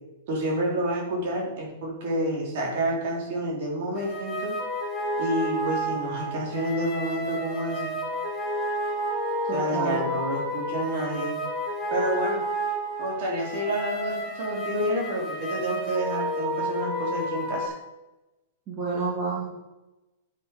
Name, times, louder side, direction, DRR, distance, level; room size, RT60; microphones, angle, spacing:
voice 1, 0.3-4.5 5.2-7.9 9.5-11.4 11.9-12.4 13.0-17.7, right 1 dB, 45° right, -1 dB, 3.8 m, -29 dB
sound 1, 3.9-17.7, right 1 dB, 5° left, 2.1 m, -31 dB
voice 2, 9.4-10.1 18.7-19.4, right 3 dB, 20° right, -6 dB, 2.5 m, -29 dB
9.5 x 7.9 x 5.4 m, 1.0 s
supercardioid pair, 170°, 0 cm